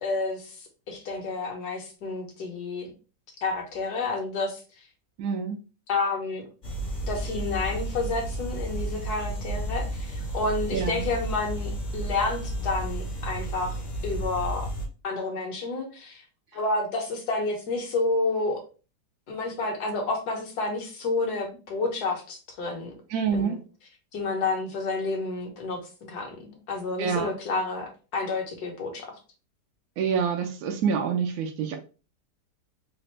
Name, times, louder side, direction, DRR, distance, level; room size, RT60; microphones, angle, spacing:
voice 1, 0.0-2.9 3.4-4.6 5.9-6.4 7.0-14.7 15.0-16.2 16.5-18.6 19.3-22.9 23.3-23.6 24.1-29.1, left 3 dB, 65° left, 2 dB, 1.5 m, -30 dB
voice 2, 5.2-5.6 10.7-11.1 23.1-23.6 27.0-27.3 30.0-31.8, right 6 dB, 65° right, 4 dB, 0.9 m, -27 dB
sound 1, 6.6-14.9, right 1 dB, 40° left, 0.7 m, -32 dB
4.2 x 2.4 x 3.1 m, 0.35 s
omnidirectional pair, 1.9 m